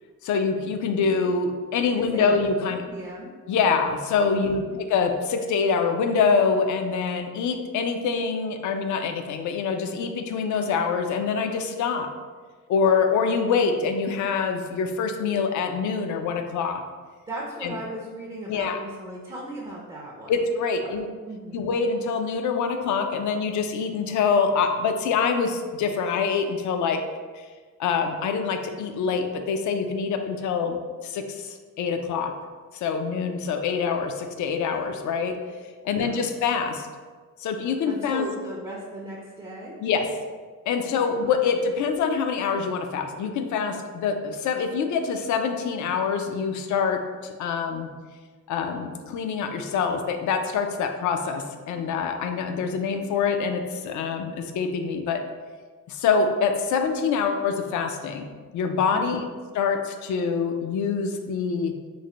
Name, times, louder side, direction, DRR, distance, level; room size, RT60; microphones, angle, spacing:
voice 1, 0.2-2.8 3.5-12.1 12.7-16.8 17.6-17.8 18.5-18.8 20.3-21.1 21.5-27.0 27.3-27.5 27.8-30.8 31.0-32.3 32.7-35.3 35.8-36.9 37.4-38.3 39.8-40.1 40.7-47.9 48.5-55.2 55.9-58.3 58.5-59.3 59.5-61.7, left 5 dB, 60° left, 6 dB, 0.4 m, -25 dB
voice 2, 1.9-2.4 2.7-3.3 4.4-4.7 17.3-20.3 21.3-21.7 35.9-36.3 37.9-39.8 41.0-41.4 58.9-59.3, right 1 dB, 15° right, -4 dB, 0.4 m, -37 dB
3.2 x 2.1 x 3.7 m, 1.5 s
cardioid pair, 115°, 34 cm